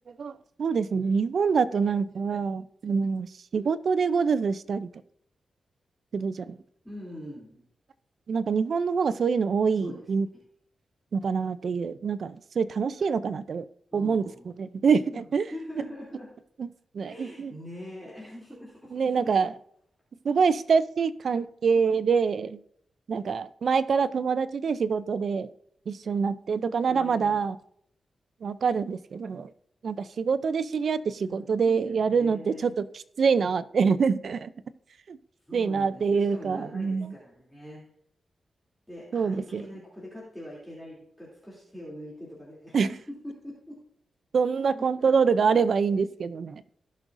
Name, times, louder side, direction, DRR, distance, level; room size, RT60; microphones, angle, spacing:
voice 1, 0.2-4.9 6.1-6.6 8.3-10.3 11.1-13.7 13.9-14.2 14.6-15.5 16.6-16.7 16.9-17.5 18.9-19.5 20.2-22.6 23.1-25.5 25.9-27.6 28.4-29.5 29.8-34.5 35.1-35.2 35.5-37.1 39.1-39.6 42.7-42.9 44.3-46.6, right 5 dB, 65° right, 0.5 m, -25 dB
voice 2, 6.8-7.7 9.8-10.3 13.9-14.5 15.1-16.4 17.0-19.3 26.9-27.4 31.3-31.6 31.8-32.7 35.5-37.9 38.9-43.8 44.7-44.9, left 1 dB, 5° left, 3.0 m, -43 dB
17.5 x 6.2 x 2.6 m
wide cardioid pair, 100°, 0 cm